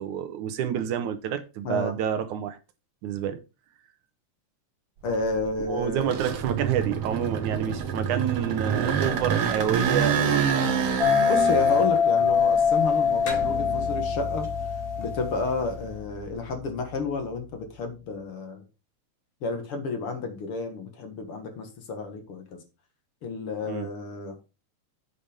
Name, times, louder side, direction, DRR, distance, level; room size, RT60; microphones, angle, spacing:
voice 1, 0.0-2.6 3.0-3.4 5.6-10.5 23.6-23.9, right 9 dB, 85° right, 2.5 m, -28 dB
voice 2, 5.0-6.2 11.3-14.5 15.0-18.6 19.4-22.6 23.2-24.4, left 3 dB, 55° left, 2.1 m, -31 dB
sound 1, 5.1-14.1 14.5-16.4, right 7 dB, 60° right, 2.0 m, -28 dB
sound 2, 11.0-15.7, left 6 dB, ahead, 3.6 m, -24 dB
sound 3, 13.3-18.0, left 5 dB, 80° left, 3.5 m, -39 dB
8.7 x 5.5 x 5.0 m
omnidirectional pair, 3.4 m